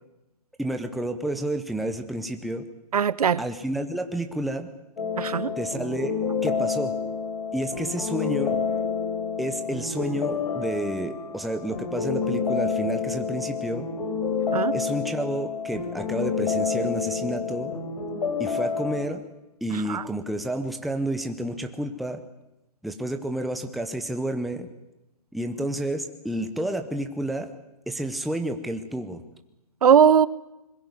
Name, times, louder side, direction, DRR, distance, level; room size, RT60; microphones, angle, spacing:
voice 1, 0.6-2.6 3.4-4.7 5.6-6.1 6.4-6.9 7.5-8.6 9.4-13.9 14.7-17.7 18.4-19.2 19.6-22.2 22.8-24.7 25.3-27.5 27.9-29.2, right 1 dB, ahead, 6 dB, 0.7 m, -30 dB
voice 2, 2.9-3.4 5.2-5.5 14.5-14.8 19.7-20.0 29.8-30.3, right 7 dB, 70° right, 20 dB, 0.9 m, -19 dB
sound 1, 5.0-19.1, left 5 dB, 75° left, 4.3 m, -29 dB
21.5 x 15.5 x 9.4 m, 0.95 s
hypercardioid pair, 160°, 20 cm